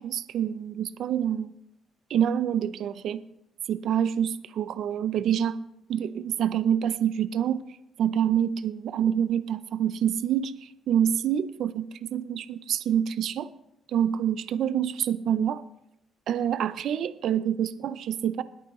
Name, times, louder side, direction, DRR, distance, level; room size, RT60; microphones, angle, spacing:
voice 1, 0.0-1.5 2.1-3.2 3.7-5.6 5.9-7.6 8.0-13.5 13.9-15.6 16.3-18.4, right 9 dB, 75° right, 14 dB, 0.5 m, -26 dB
20.5 x 8.9 x 3.1 m, 0.79 s
cardioid pair, 90°, 0 cm